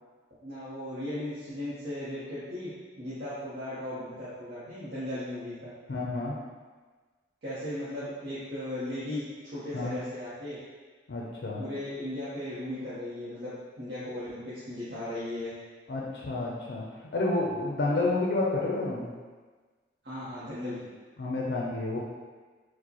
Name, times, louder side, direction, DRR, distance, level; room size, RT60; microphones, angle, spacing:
voice 1, 0.4-2.7 3.0-5.7 7.4-9.2 9.5-10.6 11.6-15.5 20.0-20.9, left 1 dB, 65° right, -12 dB, 0.8 m, -36 dB
voice 2, 5.9-6.4 9.7-9.9 11.1-11.6 15.9-16.8 17.1-19.1 21.2-22.0, left 2 dB, 70° left, -3 dB, 0.4 m, -29 dB
4.6 x 2.1 x 2.8 m, 1.4 s
head